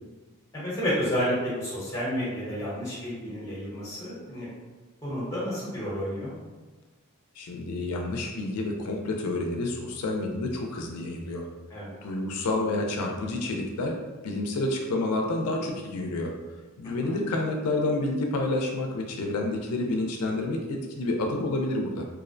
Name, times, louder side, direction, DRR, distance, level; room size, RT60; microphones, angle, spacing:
voice 1, 0.5-4.5 5.0-6.3 11.7-12.0 17.0-17.2, equal, 15° left, -8 dB, 0.7 m, -30 dB
voice 2, 7.4-11.5 12.0-14.0 14.2-16.3 16.8-22.1, left 2 dB, 90° left, 1 dB, 0.4 m, -29 dB
2.5 x 2.0 x 2.5 m, 1.3 s
head